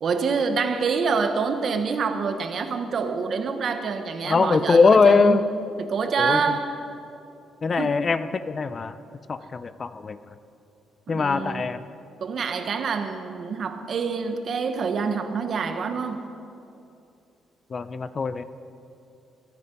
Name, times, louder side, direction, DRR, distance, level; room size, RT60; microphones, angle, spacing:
voice 1, 0.0-5.4 5.8-6.7 7.8-8.0 11.1-11.7 12.2-16.2, right 5 dB, 55° right, 8 dB, 1.3 m, -26 dB
voice 2, 4.2-5.4 6.2-6.4 7.6-8.9 9.3-10.2 11.1-11.8 17.7-18.4, left 4 dB, 40° left, 13 dB, 0.6 m, -21 dB
23.5 x 9.6 x 5.4 m, 2.7 s
cardioid pair, 90°, 0 cm